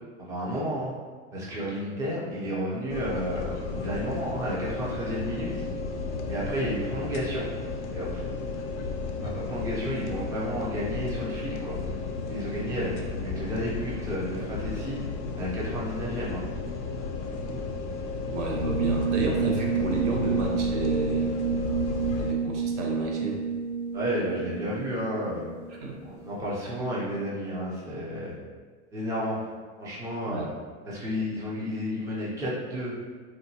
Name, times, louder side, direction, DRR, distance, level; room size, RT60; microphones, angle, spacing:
voice 1, 0.2-0.9 1.3-5.5 6.3-7.5 7.9-8.2 9.3-11.8 12.3-12.9 13.2-15.1 15.4-16.4 23.9-25.5 26.0-28.3 28.9-29.4 29.8-30.5 30.9-32.9, equal, 10° right, -6 dB, 0.4 m, -32 dB
sound 1, 2.9-22.3, left 4 dB, 80° left, 0.5 m, -33 dB
voice 2, 18.3-21.3 22.2-23.4 25.7-26.0 30.3-30.5, right 2 dB, 90° right, 0 dB, 0.8 m, -31 dB
sound 2, 18.5-26.0, right 5 dB, 65° right, 1.4 m, -29 dB
3.8 x 2.1 x 2.7 m, 1.5 s
supercardioid pair, 145°, 35 cm